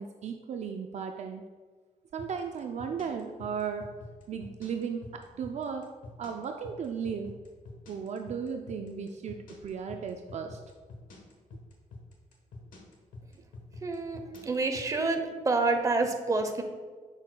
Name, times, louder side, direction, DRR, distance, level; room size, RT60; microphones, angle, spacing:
voice 1, 0.0-1.4 2.1-3.9 4.3-7.4 7.9-10.6, right 6 dB, 60° right, 5 dB, 0.4 m, -36 dB
sound 1, 2.2-15.0, left 2 dB, 85° left, 1.2 m, -47 dB
voice 2, 13.8-16.6, right 3 dB, 25° right, 5 dB, 0.8 m, -28 dB
7.2 x 6.3 x 2.2 m, 1.5 s
cardioid pair, 105°, 13 cm